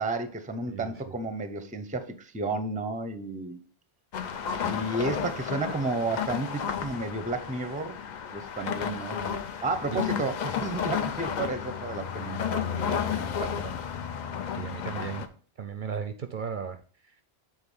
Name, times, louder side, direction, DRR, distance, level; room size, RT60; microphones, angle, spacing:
voice 1, 0.0-3.6 4.6-8.0 8.3-13.8, right 3 dB, 10° right, 10 dB, 0.5 m, -32 dB
sound 1, 4.1-15.3, left 8 dB, 50° left, 0.6 m, -32 dB
voice 2, 9.9-10.3 14.6-15.3 15.6-16.8, right 7 dB, 60° right, 9 dB, 0.6 m, -35 dB
7.1 x 3.7 x 5.4 m, 0.42 s
omnidirectional pair, 1.1 m